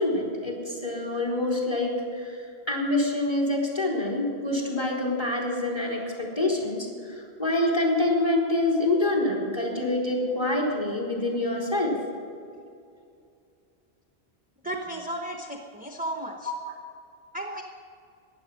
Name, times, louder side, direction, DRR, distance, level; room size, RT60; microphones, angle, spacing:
voice 1, 0.0-2.4 2.7-11.9 16.5-16.6, left 2 dB, 25° left, -2 dB, 3.6 m, -26 dB
voice 2, 14.6-16.5 17.3-17.6, right 1 dB, 10° right, 2 dB, 0.8 m, -34 dB
14.5 x 10.5 x 6.3 m, 2.4 s
omnidirectional pair, 1.0 m